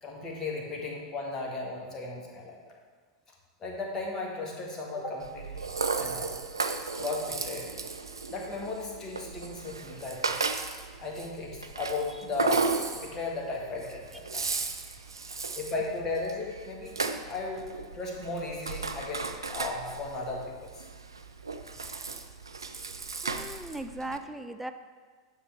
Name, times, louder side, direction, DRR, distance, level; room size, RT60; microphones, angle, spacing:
voice 1, 0.0-2.6 3.6-5.6 6.0-6.4 7.0-7.7 8.3-10.4 11.0-14.6 15.6-17.0 17.3-20.8, left 3 dB, 20° left, -2 dB, 1.7 m, -36 dB
Rattle (instrument), 5.2-24.2, right 4 dB, 80° right, 0.5 m, -35 dB
voice 2, 23.2-24.7, right 2 dB, 5° right, 7 dB, 0.4 m, -39 dB
9.9 x 7.0 x 3.5 m, 1.5 s
figure-of-eight pair, 90°, 2 cm